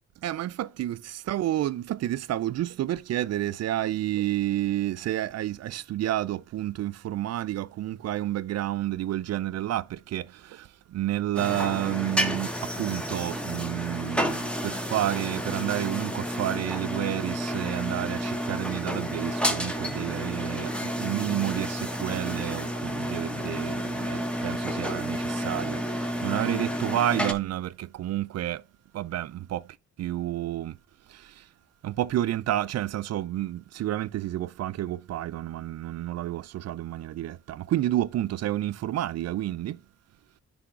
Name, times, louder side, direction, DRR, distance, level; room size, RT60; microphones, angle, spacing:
voice 1, 0.2-28.6 28.9-30.8 31.1-31.5 31.8-39.8, right 13 dB, 60° right, 0.5 m, -30 dB
sound 1, 11.3-27.3, equal, 5° left, 1.3 m, -31 dB
9.8 x 3.5 x 4.8 m
cardioid pair, 90°, 30 cm